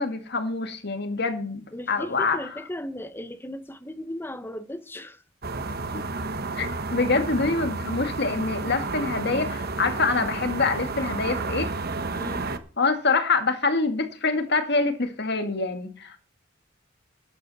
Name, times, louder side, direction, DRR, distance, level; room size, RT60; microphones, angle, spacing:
voice 1, 0.0-2.4 6.6-11.7 12.8-16.2, left 3 dB, 60° left, 2.0 m, -25 dB
voice 2, 1.7-5.2 12.1-12.5, left 1 dB, 10° left, 1.0 m, -36 dB
sound 1, 5.4-12.6, right 3 dB, 55° right, 1.2 m, -31 dB
12.0 x 12.0 x 4.2 m
head